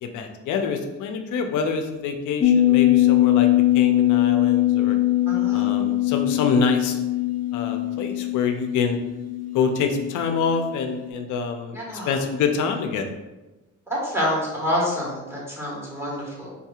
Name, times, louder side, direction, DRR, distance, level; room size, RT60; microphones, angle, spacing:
voice 1, 0.0-3.5 3.7-5.0 5.5-7.0 7.5-9.0 9.5-11.8 12.1-13.2, left 5 dB, 80° left, 5 dB, 0.5 m, -26 dB
sound 1, 2.4-10.7 11.0-11.1, left 15 dB, 30° left, 0.4 m, -21 dB
voice 2, 5.3-5.7 11.7-12.2 13.9-16.5, equal, 10° right, -6 dB, 1.4 m, -27 dB
3.9 x 2.7 x 2.3 m, 1.1 s
cardioid pair, 90°, 30 cm